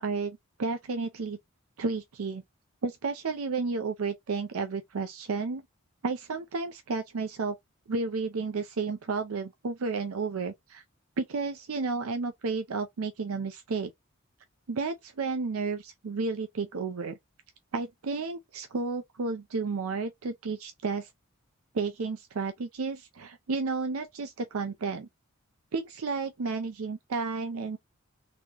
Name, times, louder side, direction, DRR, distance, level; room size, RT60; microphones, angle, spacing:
voice 1, 0.0-1.4 1.8-2.4 2.8-5.6 6.0-7.5 7.9-10.8 11.2-13.9 14.7-17.2 17.7-21.1 21.7-25.1 25.7-27.8, right 4 dB, 80° right, 0.5 m, -32 dB
4.1 x 2.9 x 2.9 m
head